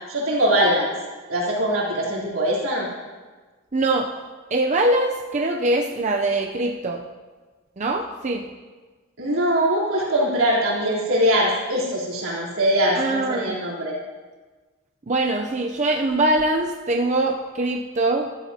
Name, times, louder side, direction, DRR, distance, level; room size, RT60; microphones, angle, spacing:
voice 1, 0.1-0.9 1.3-2.9 9.2-14.0, equal, 85° right, -5 dB, 3.5 m, -22 dB
voice 2, 3.7-4.1 4.5-7.0 7.8-8.5 13.0-13.6 15.1-18.3, right 2 dB, 35° right, 2 dB, 0.6 m, -22 dB
15.0 x 12.5 x 2.8 m, 1.4 s
head